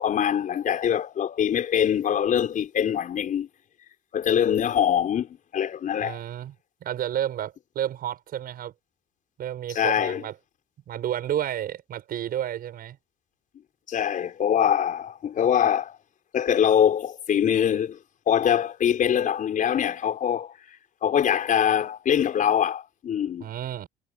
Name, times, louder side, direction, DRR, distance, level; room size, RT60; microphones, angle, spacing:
voice 1, 0.0-3.5 4.1-6.2 9.7-10.2 13.9-15.9 16.3-18.0 18.3-23.5, left 9 dB, 50° left, 5.1 m, -23 dB
voice 2, 6.0-6.5 6.8-8.7 9.4-10.4 10.9-13.0 23.4-23.9, right 11 dB, 60° right, 7.9 m, -31 dB
cardioid pair, 110°, 17 cm